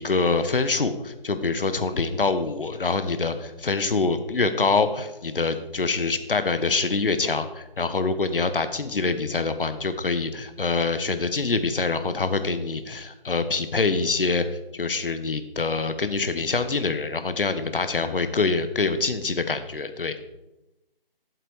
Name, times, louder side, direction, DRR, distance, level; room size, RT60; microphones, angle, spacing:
voice 1, 0.0-14.4 14.7-20.1, left 3 dB, 65° left, 10 dB, 1.1 m, -25 dB
8.0 x 7.6 x 4.8 m, 0.96 s
figure-of-eight pair, 175°, 29 cm